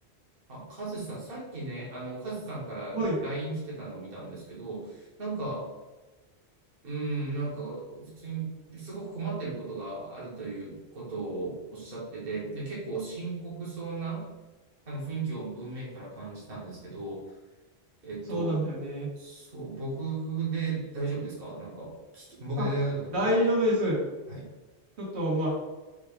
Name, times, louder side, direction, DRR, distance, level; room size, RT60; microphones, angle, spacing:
voice 1, 0.5-5.7 6.8-14.3 14.9-17.2 18.0-18.6 19.2-23.3 24.3-24.4, right 3 dB, 60° right, -6 dB, 1.3 m, -35 dB
voice 2, 18.3-19.1 22.6-22.7 23.1-24.0 25.0-25.5, equal, 80° right, -5 dB, 1.5 m, -27 dB
4.8 x 2.3 x 3.4 m, 1.2 s
omnidirectional pair, 1.1 m